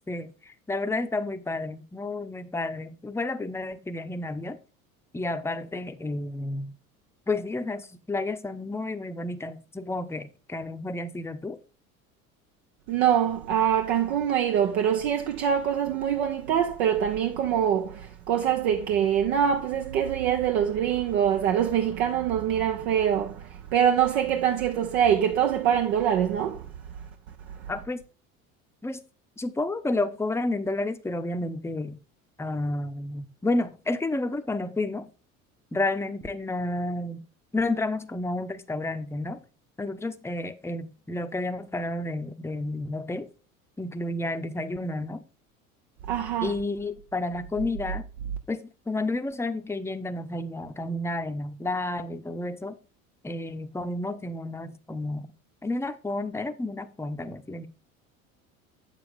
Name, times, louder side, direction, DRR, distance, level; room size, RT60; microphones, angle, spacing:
voice 1, 0.1-4.6 5.1-6.7 7.3-11.6 27.7-28.0 28.8-29.0 29.4-32.0 32.4-35.1 35.7-37.2 37.5-39.4 39.8-43.3 43.8-45.2 46.4-48.1 48.5-52.7 53.2-55.3 55.6-57.7, left 2 dB, 5° left, 0.8 m, -31 dB
voice 2, 12.9-26.7 27.5-27.6 46.1-46.5, right 9 dB, 70° right, 1.0 m, -24 dB
8.0 x 7.2 x 3.6 m
hypercardioid pair, 75°, 42 cm